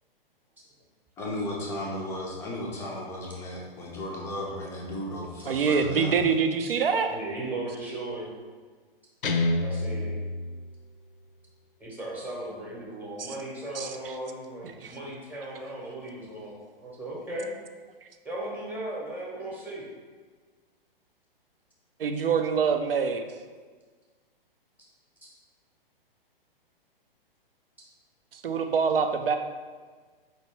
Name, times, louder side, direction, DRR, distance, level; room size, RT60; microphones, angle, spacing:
voice 1, 1.2-6.2, left 1 dB, 10° left, -3 dB, 0.4 m, -35 dB
voice 2, 5.5-7.2 13.8-13.9 14.8-14.9 22.0-23.2 28.3-29.4, right 6 dB, 75° right, 7 dB, 0.5 m, -25 dB
voice 3, 7.0-8.3 9.6-10.1 11.8-17.5 18.2-19.8, right 1 dB, 5° right, -5 dB, 0.8 m, -37 dB
Guitar, 9.2-11.3, left 2 dB, 65° left, 0.5 m, -29 dB
4.4 x 2.6 x 4.4 m, 1.5 s
figure-of-eight pair, 115°, 29 cm